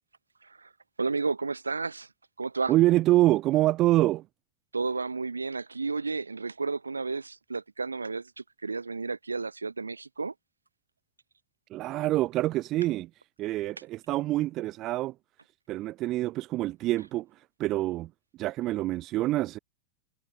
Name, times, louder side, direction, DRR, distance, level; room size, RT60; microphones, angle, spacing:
voice 1, 1.0-2.1 2.4-2.7 4.7-10.3, right 4 dB, 80° right, 0.7 m, -32 dB
voice 2, 2.7-4.2 11.7-13.1 13.4-15.1 15.7-17.3 17.6-18.1 18.4-19.6, right 16 dB, 35° right, 0.4 m, -26 dB
figure-of-eight pair, 90°, 0 cm